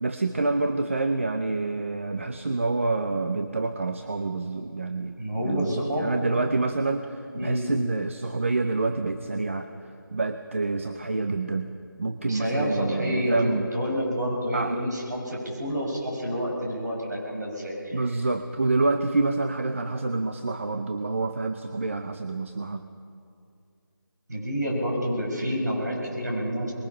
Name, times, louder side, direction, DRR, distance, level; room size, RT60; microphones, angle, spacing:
voice 1, 0.0-11.7 12.0-13.7 14.5-14.9 17.9-22.8, right 3 dB, 35° right, 8 dB, 0.7 m, -27 dB
voice 2, 5.2-6.1 7.3-7.7 12.3-18.0 24.3-26.7, equal, 50° right, -1 dB, 6.9 m, -28 dB
24.5 x 21.5 x 5.7 m, 2.3 s
figure-of-eight pair, 170°, 12 cm